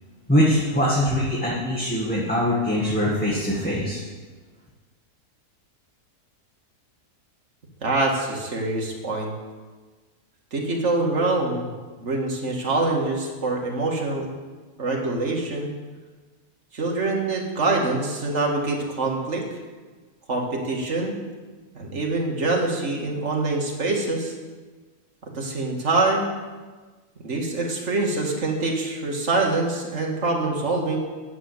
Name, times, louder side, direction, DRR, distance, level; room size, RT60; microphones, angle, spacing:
voice 1, 0.3-4.0, equal, 5° left, -6 dB, 1.7 m, -22 dB
voice 2, 7.8-9.3 10.5-11.7 12.0-14.3 14.8-15.7 16.7-19.4 20.3-21.2 21.7-24.3 25.3-26.3 27.2-31.0, right 2 dB, 45° right, 0 dB, 2.1 m, -25 dB
9.9 x 7.6 x 7.9 m, 1.3 s
omnidirectional pair, 1.7 m